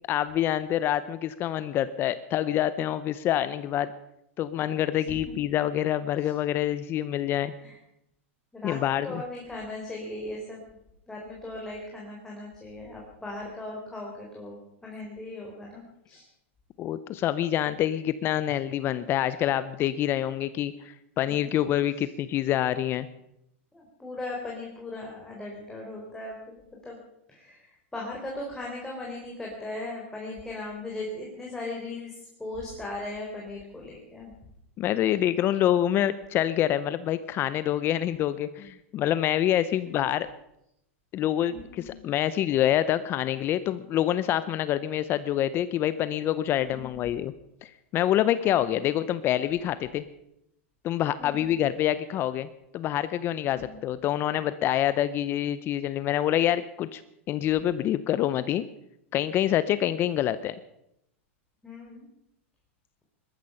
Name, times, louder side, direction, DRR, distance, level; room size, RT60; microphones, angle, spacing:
voice 1, 0.1-3.9 4.4-7.5 8.6-9.2 16.8-23.1 34.8-40.3 41.1-47.3 47.6-50.0 50.8-52.5 52.7-57.0 57.3-58.6 59.1-60.5, left 12 dB, 30° left, 14 dB, 0.7 m, -26 dB
voice 2, 8.5-10.6 11.1-16.2 22.0-22.1 23.7-27.0 27.3-34.3 41.5-42.0 46.6-47.1 48.4-48.9 51.2-51.6 53.5-53.8 61.6-62.1, left 2 dB, 5° left, -3 dB, 3.8 m, -38 dB
19.5 x 13.0 x 5.6 m, 0.81 s
supercardioid pair, 135°, 7 cm